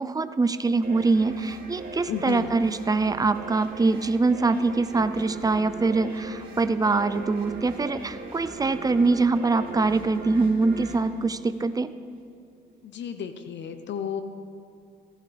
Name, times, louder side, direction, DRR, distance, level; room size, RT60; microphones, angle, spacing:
voice 1, 0.0-11.9, right 3 dB, 20° right, 11 dB, 0.6 m, -24 dB
sound 1, 0.8-12.1, right 3 dB, 45° right, 2.9 m, -40 dB
voice 2, 2.0-2.5 12.8-14.2, left 8 dB, 65° left, 8 dB, 0.8 m, -33 dB
17.0 x 15.0 x 3.4 m, 2.3 s
cardioid pair, 90°, 20 cm